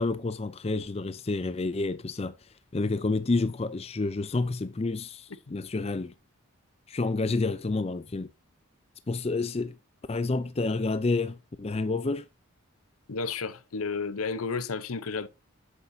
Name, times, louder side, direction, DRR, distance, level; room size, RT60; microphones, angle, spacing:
voice 1, 0.0-2.3 2.7-6.1 6.9-8.3 9.1-9.8 10.1-12.3, left 3 dB, 30° left, 0.4 m, -29 dB
voice 2, 13.1-15.3, left 4 dB, 80° left, 0.7 m, -32 dB
8.2 x 8.0 x 2.7 m
head